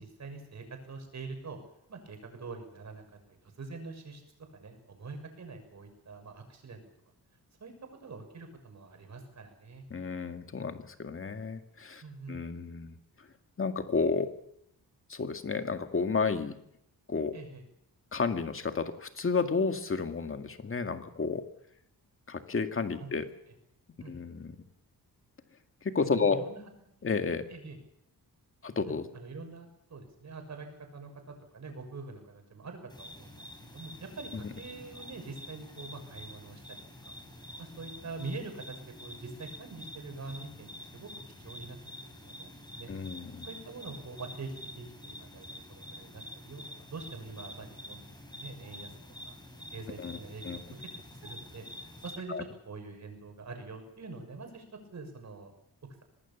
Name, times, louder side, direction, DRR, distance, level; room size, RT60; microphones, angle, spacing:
voice 1, 0.0-1.6 1.9-3.0 3.3-4.2 4.5-6.8 7.6-7.7 8.0-9.8 12.0-12.4 17.3-17.6 23.0-23.2 24.0-24.1 26.2-26.6 27.5-27.8 28.8-30.7 30.9-37.1 37.6-41.1 41.4-42.9 43.4-44.5 44.7-49.0 49.2-49.4 49.7-54.6 54.9-55.5, right 3 dB, 45° right, 5 dB, 6.5 m, -45 dB
voice 2, 9.9-12.0 12.3-13.0 13.6-14.3 15.1-16.6 17.1-17.3 18.1-21.5 22.3-23.3 24.1-24.6 25.8-26.4 27.0-27.5 28.6-29.1 34.3-34.5 42.9-43.5 50.0-50.2 50.4-50.6 52.3-52.4, left 4 dB, 35° left, 7 dB, 2.0 m, -31 dB
sound 1, 32.9-52.2, left 1 dB, 10° left, 4.5 m, -47 dB
25.5 x 19.0 x 7.1 m, 0.75 s
wide cardioid pair, 155°, 37 cm